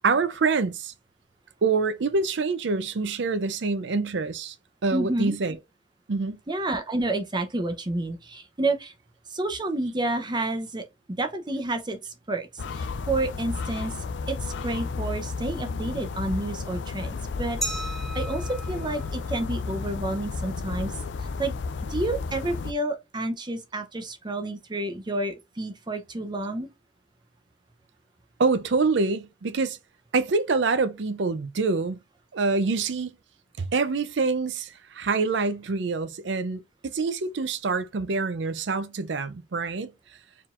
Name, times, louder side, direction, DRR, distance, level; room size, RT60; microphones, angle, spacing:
voice 1, 0.0-0.9 1.6-4.6 4.8-5.6 6.1-6.4 28.4-29.8 30.1-32.0 32.3-33.2 33.6-39.9, right 4 dB, 75° right, 0.5 m, -26 dB
voice 2, 4.9-5.4 6.5-8.9 9.3-10.8 11.2-20.9 21.2-21.5 21.9-26.7, right 2 dB, 25° right, 0.7 m, -30 dB
sound 1, 12.6-22.7, left 4 dB, 75° left, 0.4 m, -32 dB
Glass, 17.6-20.3, right 1 dB, ahead, 1.7 m, -37 dB
4.6 x 3.8 x 2.4 m
head